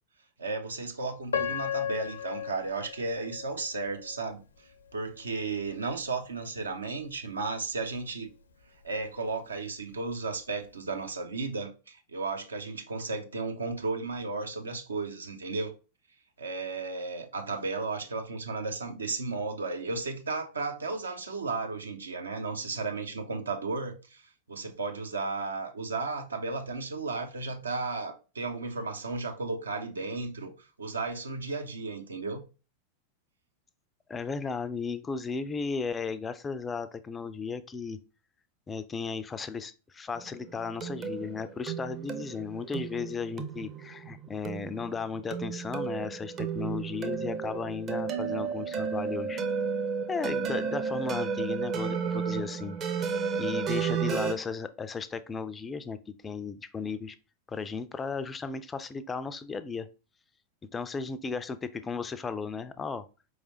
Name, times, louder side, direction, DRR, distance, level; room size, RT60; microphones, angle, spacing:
voice 1, 0.4-8.3 8.8-15.7 16.4-24.2 24.5-32.4, right 3 dB, 75° right, 0.7 m, -34 dB
Piano, 1.3-4.3 4.9-5.0 5.7-5.9, left 8 dB, 70° left, 0.5 m, -35 dB
voice 2, 34.1-38.0 38.7-49.4 50.1-52.8 53.4-57.2 57.5-59.9 60.7-63.1, left 5 dB, 15° left, 0.3 m, -35 dB
sound 1, 40.1-54.3, right 6 dB, 30° right, 0.6 m, -33 dB
4.7 x 3.2 x 2.7 m
figure-of-eight pair, 90°, 0 cm